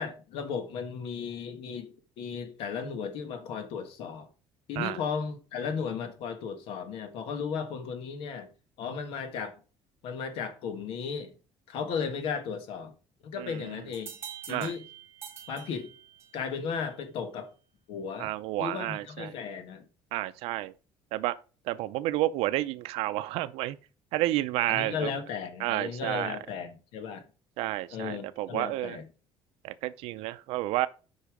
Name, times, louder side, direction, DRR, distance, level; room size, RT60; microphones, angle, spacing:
voice 1, 0.0-4.3 4.7-8.5 8.8-9.6 10.0-11.4 11.7-12.9 13.2-14.2 14.5-14.8 15.5-15.9 16.3-17.5 17.9-18.3 18.6-19.8 24.7-27.2 27.9-29.0, left 6 dB, 65° left, 1.6 m, -35 dB
sound 1, 13.9-16.5, right 8 dB, 25° right, 2.4 m, -45 dB
voice 2, 18.2-19.3 20.1-20.7 21.1-21.3 21.7-23.8 24.1-25.1 25.6-26.4 27.6-29.0 29.6-30.9, right 16 dB, 90° right, 0.6 m, -30 dB
8.2 x 5.7 x 5.0 m
cardioid pair, 175°, 10 cm